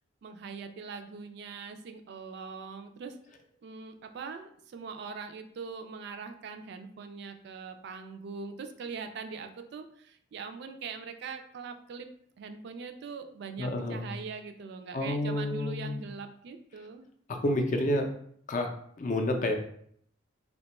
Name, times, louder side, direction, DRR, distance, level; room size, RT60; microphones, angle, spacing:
voice 1, 0.2-3.2 3.6-12.1 12.4-17.1, right 5 dB, 60° right, 7 dB, 0.3 m, -42 dB
voice 2, 13.6-14.1 14.9-16.0 17.3-18.1 18.5-19.6, left 1 dB, 40° left, 5 dB, 0.4 m, -29 dB
2.8 x 2.2 x 4.0 m, 0.66 s
head